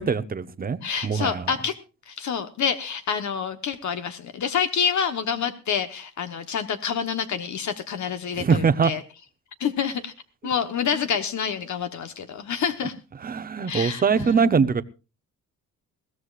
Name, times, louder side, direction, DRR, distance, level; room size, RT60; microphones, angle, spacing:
voice 1, 0.0-1.5 8.4-8.9 13.2-14.8, right 5 dB, 25° right, 0.8 m, -22 dB
voice 2, 0.8-1.8 2.1-9.0 9.6-10.1 10.4-12.9 13.6-14.5, left 7 dB, 60° left, 1.2 m, -27 dB
21.0 x 16.0 x 2.5 m
cardioid pair, 115°, 32 cm